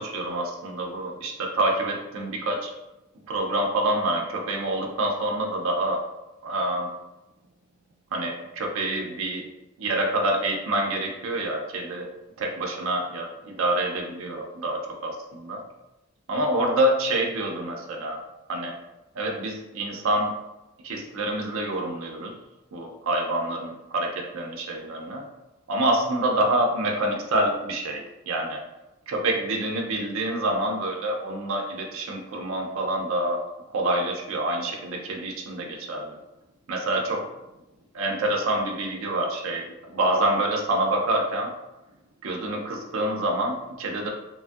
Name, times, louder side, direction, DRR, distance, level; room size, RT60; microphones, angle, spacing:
voice 1, 0.0-2.7 3.3-6.0 6.4-6.9 8.1-9.5 9.8-12.1 12.4-15.6 16.3-18.2 18.5-18.7 19.1-20.4 20.8-22.4 22.7-25.2 25.7-28.6 29.1-33.4 33.7-36.2 36.7-37.2 37.9-41.5 42.2-44.1, right 1 dB, 70° right, 1 dB, 0.4 m, -27 dB
3.0 x 2.5 x 2.3 m, 0.95 s
head